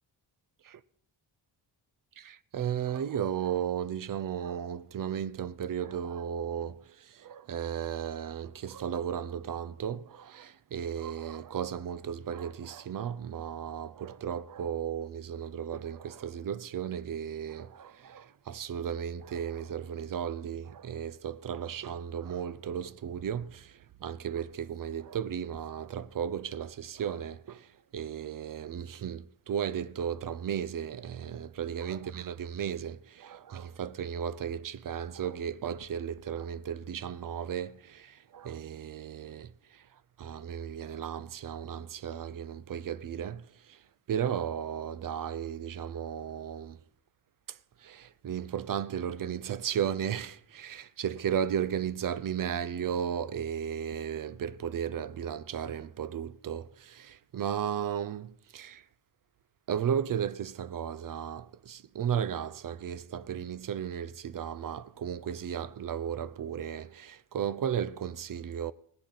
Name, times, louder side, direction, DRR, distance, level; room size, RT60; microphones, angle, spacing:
voice 1, 2.2-39.9 40.2-43.8 44.1-46.8 47.5-58.9 59.7-68.7, right 8 dB, 45° right, 0.5 m, -35 dB
17.5 x 10.5 x 3.9 m
wide cardioid pair, 110°, 48 cm